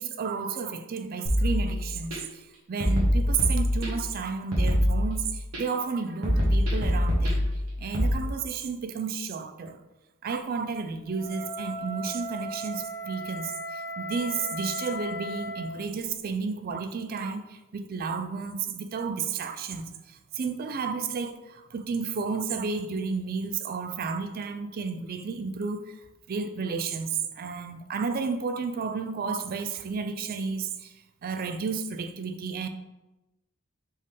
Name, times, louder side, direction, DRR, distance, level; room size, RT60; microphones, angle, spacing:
voice 1, 0.0-7.5 7.8-9.8 10.2-25.9 26.3-32.7, right 5 dB, 45° right, 0.3 m, -32 dB
sound 1, 1.3-2.2 2.8-4.2 4.5-5.6 6.2-8.1, equal, 85° right, 1.2 m, -25 dB
Wind instrument woodwind instrument, 11.1-15.7, equal, 45° left, 0.8 m, -36 dB
4.3 x 3.1 x 3.6 m
head